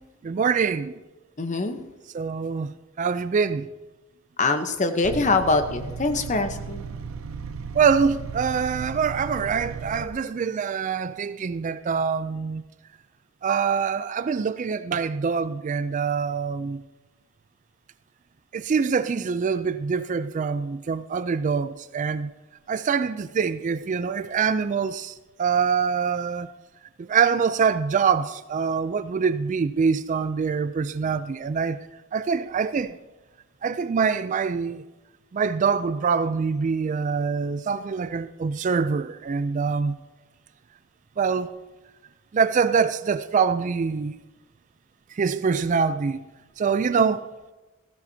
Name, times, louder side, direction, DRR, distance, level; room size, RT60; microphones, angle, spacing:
voice 1, 0.2-0.9 2.1-3.7 7.7-12.6 13.4-16.8 18.5-22.3 22.7-26.5 27.0-31.8 32.1-33.0 33.6-34.8 35.3-40.0 41.2-41.5 42.3-44.2 45.1-46.2 46.6-47.3, right 6 dB, 35° right, 0.3 m, -24 dB
voice 2, 1.4-1.8 4.4-6.9, left 3 dB, 35° left, 0.9 m, -23 dB
sound 1, 5.0-10.1, right 5 dB, 80° right, 0.6 m, -36 dB
15.5 x 15.0 x 2.8 m
head